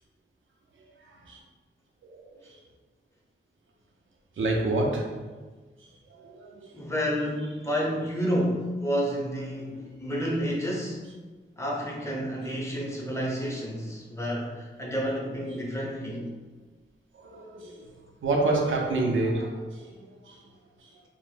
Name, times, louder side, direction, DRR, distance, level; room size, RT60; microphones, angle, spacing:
voice 1, 2.1-2.6 4.4-5.2 6.2-6.6 17.2-17.9 18.2-20.4, right 2 dB, 80° right, 0 dB, 0.4 m, -28 dB
voice 2, 6.7-11.0 11.6-16.3, equal, 15° left, -3 dB, 0.6 m, -30 dB
2.1 x 2.0 x 3.1 m, 1.3 s
wide cardioid pair, 75°, 20 cm